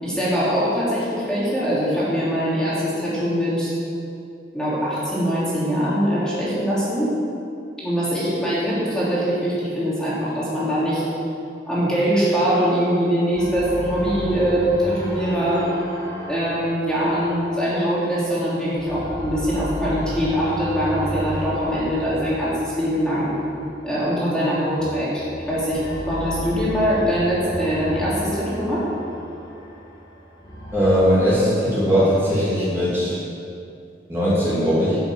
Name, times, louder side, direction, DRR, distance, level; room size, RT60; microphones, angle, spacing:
voice 1, 0.0-3.7 4.5-7.1 7.8-11.0 11.7-15.7 16.3-23.3 23.8-28.8, equal, 5° left, -9 dB, 3.2 m, -22 dB
sound 1, 13.4-18.3 18.7-24.0 24.7-30.8, equal, 20° left, 2.4 m, -34 dB
voice 2, 30.7-33.2 34.1-35.0, equal, 15° right, -10 dB, 2.9 m, -19 dB
12.0 x 6.9 x 7.6 m, 2.5 s
head